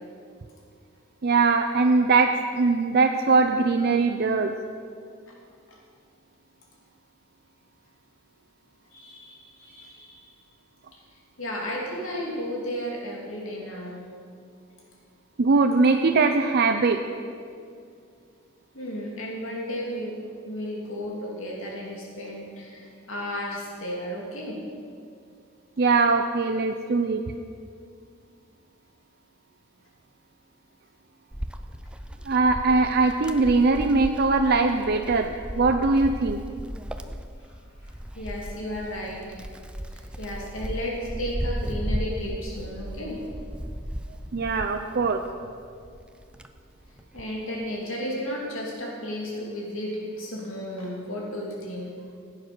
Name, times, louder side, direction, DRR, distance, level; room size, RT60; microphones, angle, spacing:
voice 1, 1.2-4.5 15.4-17.0 25.8-27.2 32.3-36.4 44.3-45.2, right 3 dB, 50° right, 5 dB, 0.6 m, -21 dB
voice 2, 8.9-10.3 10.9-11.0 11.4-14.1 18.7-20.2 20.4-24.6 37.4-37.5 37.8-39.4 39.9-43.2 47.1-52.2, equal, 70° left, -3 dB, 2.9 m, -34 dB
Wind, 31.3-45.4 45.9-47.4, equal, 5° right, 0.5 m, -35 dB
16.0 x 8.8 x 6.1 m, 2.3 s
head